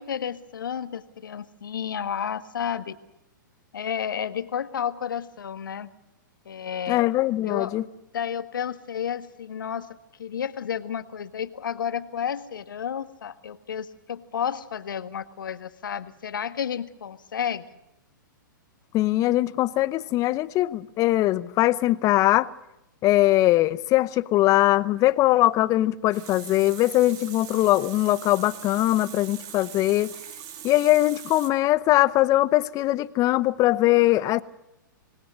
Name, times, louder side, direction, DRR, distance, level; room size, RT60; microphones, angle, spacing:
voice 1, 0.0-3.0 3.7-5.9 6.4-7.0 7.4-17.6, left 8 dB, 75° left, 1.6 m, -31 dB
voice 2, 6.9-7.8 18.9-22.5 23.0-30.1 30.6-34.4, left 16 dB, 30° left, 0.8 m, -21 dB
Water tap faucet, 25.8-31.5, right 9 dB, 35° right, 2.9 m, -42 dB
26.5 x 20.0 x 6.5 m
hypercardioid pair, 115°, 11 cm